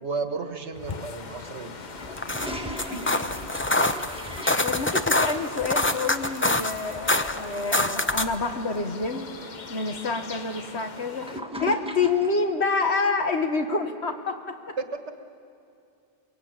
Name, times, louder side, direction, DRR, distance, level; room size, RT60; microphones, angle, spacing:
voice 1, 0.0-1.8 2.5-3.2 14.8-14.9, right 4 dB, 75° right, 7 dB, 1.8 m, -34 dB
sound 1, 0.7-11.4, left 5 dB, 45° left, 1.0 m, -41 dB
Toilet flush, 1.8-12.4, equal, 5° right, 1.6 m, -41 dB
sound 2, 2.0-8.4, left 2 dB, 15° left, 0.6 m, -26 dB
voice 2, 4.6-9.3 9.7-11.3 11.6-14.7, left 4 dB, 65° left, 6 dB, 1.8 m, -27 dB
23.5 x 23.5 x 8.9 m, 2.5 s
omnidirectional pair, 1.2 m